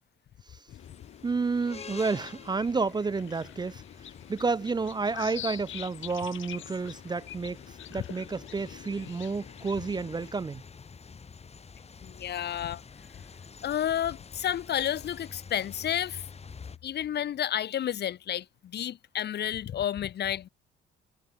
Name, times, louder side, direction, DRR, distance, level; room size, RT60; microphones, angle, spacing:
sound 1, 0.7-10.3, left 13 dB, 75° left, 1.9 m, -46 dB
sound 2, 0.8-16.8, left 5 dB, 30° left, 1.4 m, -48 dB
voice 1, 1.2-3.8 4.3-10.6, right 4 dB, 20° right, 0.5 m, -30 dB
voice 2, 12.0-12.8 13.6-16.2 16.8-20.5, left 10 dB, 55° left, 0.8 m, -31 dB
cardioid pair, 90°, 20 cm